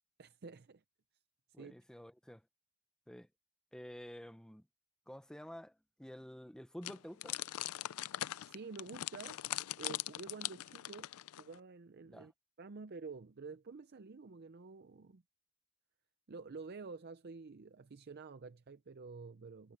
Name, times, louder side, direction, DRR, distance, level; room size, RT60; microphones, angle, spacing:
voice 1, 0.2-0.8 1.6-1.7 8.5-9.4 9.8-11.1 11.4-12.3 12.6-15.2 16.3-19.8, right 4 dB, 50° right, 0.5 m, -49 dB
voice 2, 1.5-2.4 3.1-3.3 3.7-4.7 5.1-7.4 12.1-12.3, equal, 5° left, 0.7 m, -50 dB
sound 1, 6.8-11.6, left 14 dB, 80° left, 0.4 m, -41 dB
head